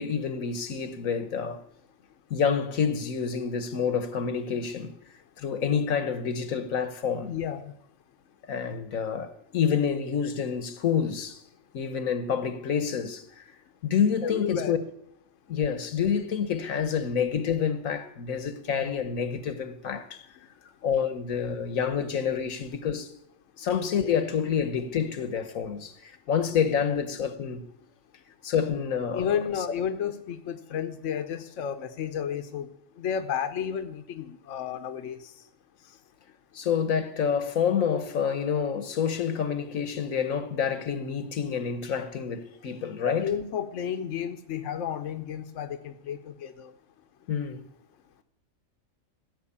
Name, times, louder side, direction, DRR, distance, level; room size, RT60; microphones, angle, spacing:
voice 1, 0.0-1.6 2.3-5.0 5.4-7.3 8.5-11.4 11.7-13.2 13.8-14.8 15.5-20.2 20.8-23.1 23.6-27.6 28.4-29.4 36.5-43.3 47.3-47.7, left 7 dB, 80° left, 1.5 m, -28 dB
voice 2, 7.2-7.7 14.2-14.8 26.9-27.0 29.1-32.7 33.0-35.3 43.2-46.7, left 8 dB, 65° left, 1.1 m, -32 dB
15.5 x 6.4 x 8.6 m
omnidirectional pair, 1.4 m